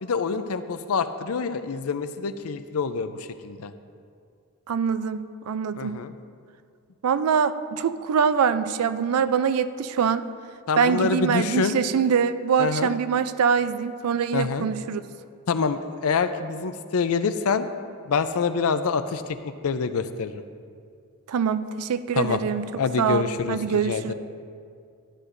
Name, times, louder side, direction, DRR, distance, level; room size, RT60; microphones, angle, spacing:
voice 1, 0.0-3.7 5.8-6.1 10.7-11.8 12.6-12.9 14.3-14.7 15.5-17.7 18.1-20.4 22.1-22.4 22.8-24.1, left 5 dB, 70° left, 11 dB, 0.5 m, -26 dB
voice 2, 4.7-6.0 7.0-10.2 10.8-15.0 21.3-22.7 23.0-24.1, right 6 dB, 75° right, 13 dB, 0.4 m, -24 dB
12.5 x 9.7 x 2.6 m, 2.3 s
head